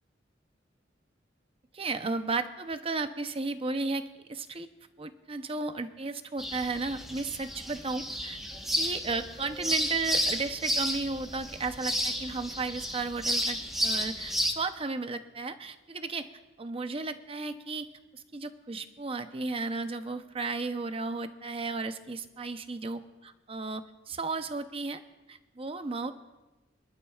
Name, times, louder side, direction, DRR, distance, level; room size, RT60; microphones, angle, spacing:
voice 1, 1.7-4.7 5.0-8.4 8.7-16.3 16.6-17.9 18.1-23.0 23.5-25.0 25.3-26.1, right 3 dB, 30° right, 9 dB, 0.7 m, -34 dB
sound 1, 6.4-14.5, equal, ahead, 1.2 m, -32 dB
26.5 x 12.0 x 2.4 m, 1.1 s
head